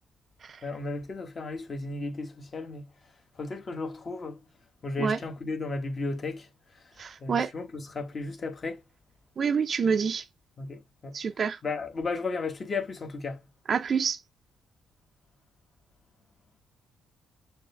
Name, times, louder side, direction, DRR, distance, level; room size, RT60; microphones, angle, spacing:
voice 1, 0.6-2.9 3.4-4.4 4.8-6.5 6.7-6.8 7.2-8.8 10.6-11.2 11.6-13.4, left 3 dB, 40° left, 1.3 m, -34 dB
voice 2, 7.0-7.5 9.4-10.2 11.1-11.6 13.7-14.2, right 6 dB, 50° right, 0.5 m, -27 dB
6.2 x 2.1 x 3.3 m
cardioid pair, 90°, 0 cm